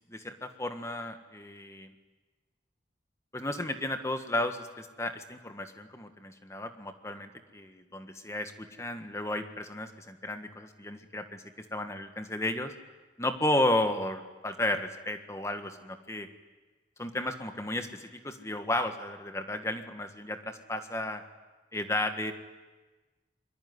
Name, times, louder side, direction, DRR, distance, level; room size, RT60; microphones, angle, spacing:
voice 1, 0.1-1.9 3.3-11.4 11.7-12.7 13.2-16.3 17.0-21.2 21.7-22.3, left 1 dB, 15° left, 7 dB, 1.6 m, -33 dB
26.5 x 23.0 x 9.7 m, 1.2 s
head